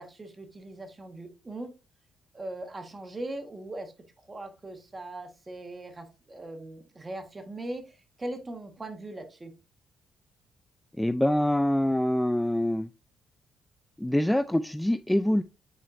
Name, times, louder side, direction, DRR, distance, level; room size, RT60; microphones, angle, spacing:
voice 1, 0.0-1.7 2.3-3.9 4.3-7.9 8.2-9.5, right 2 dB, 25° right, 1.5 m, -39 dB
voice 2, 11.0-12.9 14.0-15.4, left 1 dB, 5° left, 0.3 m, -25 dB
9.1 x 4.2 x 2.7 m
cardioid pair, 90°, 0 cm